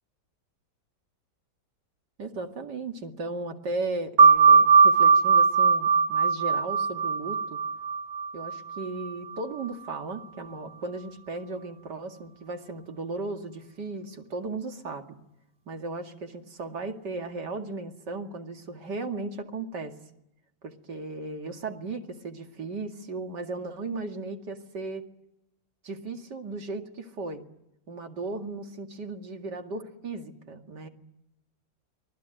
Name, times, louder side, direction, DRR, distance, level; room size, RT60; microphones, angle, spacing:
voice 1, 2.2-7.6 8.3-15.2 15.7-20.0 20.6-25.0 25.8-27.4 27.9-30.9, right 3 dB, 75° right, 4 dB, 2.8 m, -36 dB
sound 1, 4.2-9.4, right 5 dB, 35° right, 1.9 m, -20 dB
25.0 x 19.0 x 9.1 m, 0.86 s
omnidirectional pair, 1.9 m